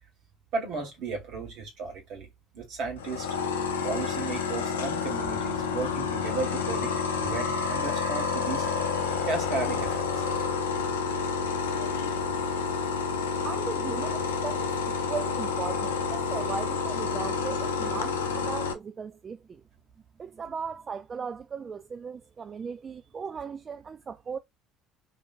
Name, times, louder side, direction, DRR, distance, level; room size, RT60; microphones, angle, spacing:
voice 1, 0.5-2.3 2.5-3.3 3.8-8.7 9.2-10.3, right 4 dB, 60° right, 1.8 m, -34 dB
sound 1, 3.0-18.7, left 5 dB, 85° left, 0.5 m, -29 dB
voice 2, 13.4-14.7 15.1-19.6 20.2-24.4, right 6 dB, 35° right, 0.3 m, -37 dB
3.3 x 2.9 x 2.5 m
hypercardioid pair, 60°, 0 cm